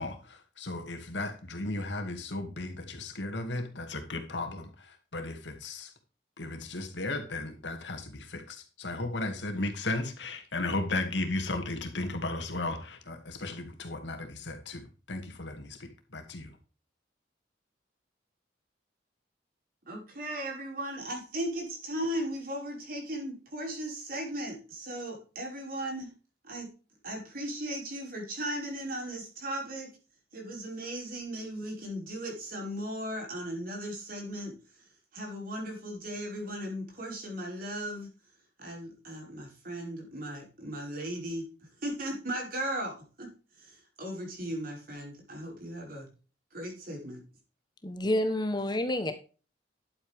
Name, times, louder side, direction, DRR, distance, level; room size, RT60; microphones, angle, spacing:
voice 1, 0.0-5.9 6.4-16.5, left 2 dB, 75° left, 5 dB, 2.4 m, -35 dB
voice 2, 19.9-26.1 26.4-26.7 27.0-29.9 30.3-34.9 35.1-38.1 38.6-41.5 41.8-43.3 43.6-46.1 46.5-47.2, right 1 dB, 50° right, 0 dB, 5.3 m, -37 dB
voice 3, 47.8-49.1, left 1 dB, 25° left, 8 dB, 1.1 m, -28 dB
11.5 x 8.2 x 3.5 m, 0.35 s
head